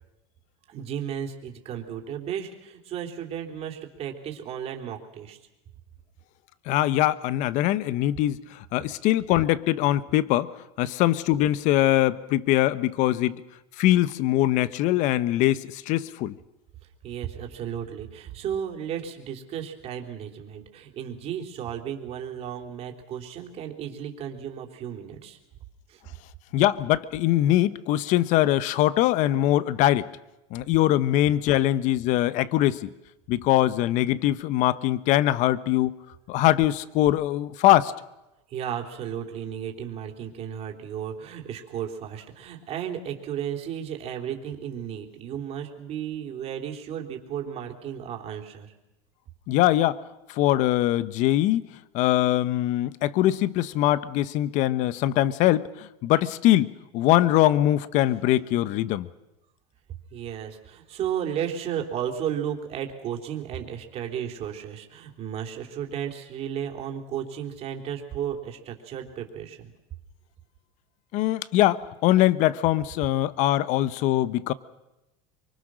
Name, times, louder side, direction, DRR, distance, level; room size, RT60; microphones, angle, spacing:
voice 1, 0.7-5.4 10.8-10.9 17.0-25.4 25.9-26.0 38.5-48.7 60.1-69.7, right 9 dB, 45° right, 3 dB, 3.6 m, -34 dB
voice 2, 6.7-10.5 10.8-13.4 13.8-16.4 26.5-30.1 30.5-32.9 33.3-36.0 36.3-37.9 49.5-50.0 50.3-51.7 51.9-59.1 71.1-74.5, left 14 dB, 55° left, 16 dB, 1.0 m, -22 dB
24.5 x 24.0 x 6.4 m, 0.95 s
supercardioid pair, 120°, 15 cm